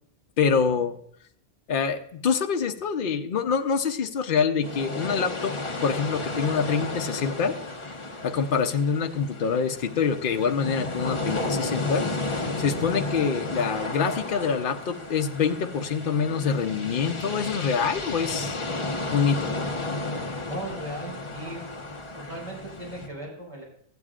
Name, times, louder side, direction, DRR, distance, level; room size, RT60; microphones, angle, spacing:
voice 1, 0.4-1.0 1.7-5.5 5.8-7.5 8.2-12.0 12.6-18.6 19.1-19.5, left 6 dB, 55° left, 6 dB, 0.8 m, -25 dB
sound 1, 4.6-23.1, left 2 dB, 30° left, 1.0 m, -33 dB
voice 2, 20.5-21.6 21.9-23.6, right 2 dB, 30° right, -4 dB, 4.0 m, -38 dB
14.5 x 9.4 x 2.4 m, 0.66 s
omnidirectional pair, 1.1 m